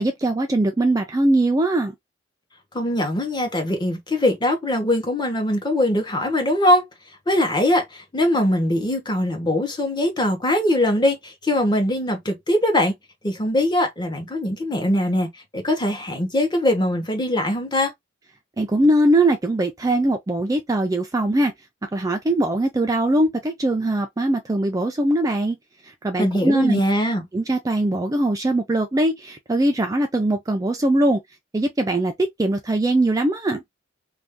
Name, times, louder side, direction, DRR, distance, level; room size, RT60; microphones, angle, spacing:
voice 1, 0.0-1.9 18.6-21.5 21.9-25.6 25.8-26.8 27.3-31.2 31.5-33.6, right 1 dB, 15° right, 0.3 m, -21 dB
voice 2, 2.7-6.8 7.3-12.9 13.2-15.3 15.5-17.9 26.2-27.2, left 1 dB, 20° left, 0.9 m, -21 dB
2.6 x 2.2 x 3.4 m
head